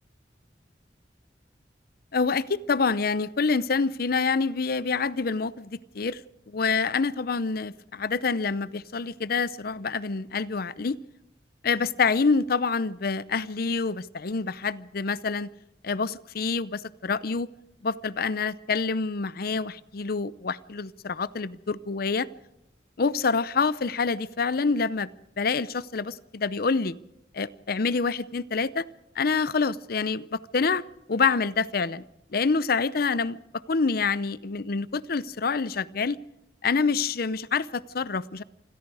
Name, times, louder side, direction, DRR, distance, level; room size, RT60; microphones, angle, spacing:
voice 1, 2.1-6.2 6.5-11.0 11.6-15.5 15.8-17.5 17.8-22.3 23.0-25.1 25.4-27.0 27.3-28.9 29.2-30.8 31.1-32.0 32.3-33.4 33.7-36.2 36.6-38.4, left 4 dB, 60° left, 18 dB, 0.7 m, -27 dB
27.5 x 21.0 x 4.9 m, 0.86 s
head